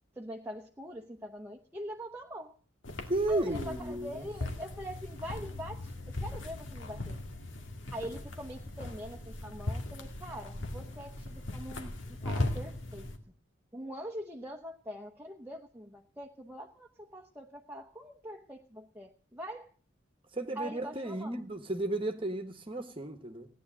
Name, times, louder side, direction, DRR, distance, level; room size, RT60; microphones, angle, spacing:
voice 1, 0.2-2.6 3.3-7.2 7.9-13.1 13.7-19.7 20.5-21.4, equal, 10° right, 1.0 m, -43 dB
sound 1, 2.8-13.2, left 2 dB, 80° left, 2.3 m, -39 dB
voice 2, 3.1-4.2 20.3-23.5, right 2 dB, 25° right, 1.3 m, -33 dB
17.5 x 10.0 x 7.4 m
head